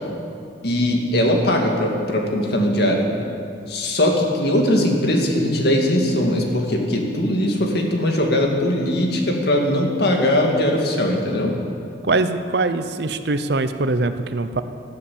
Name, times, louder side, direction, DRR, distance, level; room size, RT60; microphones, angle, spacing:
voice 1, 0.6-3.1 3.7-11.6, left 1 dB, 55° left, 1 dB, 2.2 m, -20 dB
voice 2, 12.0-14.6, right 3 dB, 55° right, 10 dB, 0.7 m, -22 dB
13.0 x 12.5 x 8.7 m, 2.4 s
head